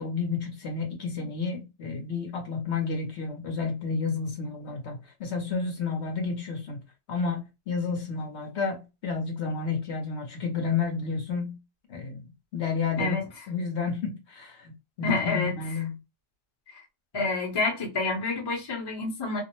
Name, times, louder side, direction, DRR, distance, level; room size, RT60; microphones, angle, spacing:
voice 1, 0.0-6.8 7.1-11.6 11.9-12.2 12.5-13.2 13.5-16.0, left 5 dB, 60° left, 0.9 m, -31 dB
voice 2, 15.0-15.6 16.7-16.8 17.1-19.4, left 3 dB, 25° left, 0.7 m, -28 dB
2.6 x 2.0 x 2.9 m
omnidirectional pair, 1.4 m